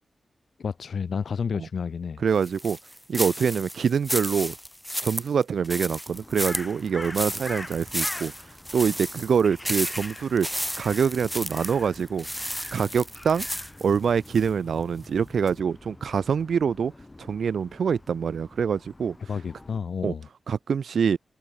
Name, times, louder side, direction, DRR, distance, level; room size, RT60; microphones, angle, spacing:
voice 1, 0.6-2.2 19.3-20.3, left 6 dB, 75° left, 0.5 m, -30 dB
voice 2, 2.2-2.8 3.1-4.5 5.0-8.3 8.7-10.5 10.8-12.3 12.7-13.5 13.8-16.9 17.2-19.1 20.0-20.1 20.5-21.2, right 6 dB, 85° right, 1.0 m, -25 dB
sound 1, 2.4-14.5 14.9-15.1 15.5-15.6, equal, ahead, 0.5 m, -33 dB
Crow, 6.1-19.8, left 2 dB, 25° left, 5.6 m, -44 dB
cardioid pair, 55°, 0 cm